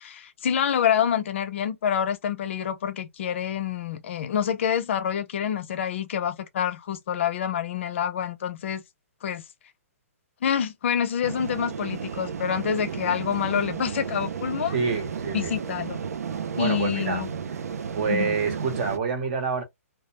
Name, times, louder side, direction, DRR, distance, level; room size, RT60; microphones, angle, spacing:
voice 1, 0.0-8.8 9.2-9.4 10.4-14.8 15.3-16.0 16.6-17.3 18.1-18.4, left 8 dB, 55° left, 0.5 m, -27 dB
sound 1, 11.2-19.0, right 6 dB, 85° right, 0.4 m, -33 dB
voice 2, 14.7-15.5 16.6-17.2 17.9-19.6, right 5 dB, 45° right, 0.9 m, -27 dB
2.2 x 2.0 x 2.9 m
hypercardioid pair, 155°, 8 cm